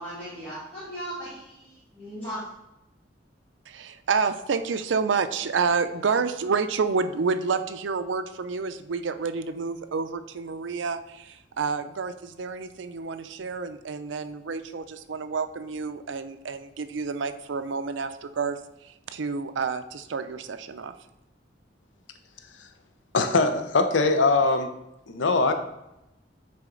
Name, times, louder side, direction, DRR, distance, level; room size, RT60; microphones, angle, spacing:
voice 1, 0.0-2.5, equal, 10° left, -11 dB, 2.2 m, -37 dB
voice 2, 3.7-20.9, right 5 dB, 75° right, 10 dB, 0.5 m, -29 dB
voice 3, 23.1-24.7 25.1-25.5, left 3 dB, 80° left, 7 dB, 0.7 m, -21 dB
9.4 x 4.2 x 3.8 m, 0.89 s
head